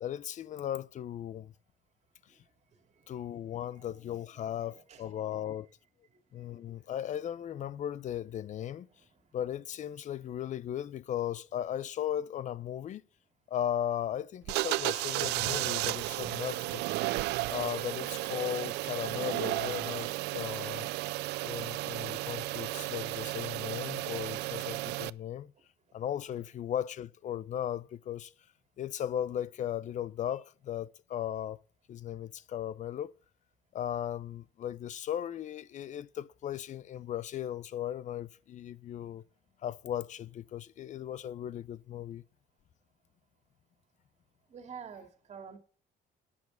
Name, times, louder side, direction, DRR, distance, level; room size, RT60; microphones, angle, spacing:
voice 1, 0.0-1.5 3.1-5.7 6.3-8.9 9.3-13.0 13.5-16.9 17.5-20.9 21.4-25.5 25.9-28.3 28.8-31.6 31.9-33.1 33.7-39.2 39.6-42.2, left 10 dB, 45° left, 0.5 m, -37 dB
voice 2, 2.7-3.1 3.5-3.8 4.4-5.2 6.3-6.9 9.0-9.1 44.5-45.6, right 6 dB, 40° right, 2.3 m, -50 dB
sound 1, 14.4-25.1, right 20 dB, 85° right, 0.4 m, -33 dB
8.6 x 7.0 x 7.5 m
cardioid pair, 110°, 17 cm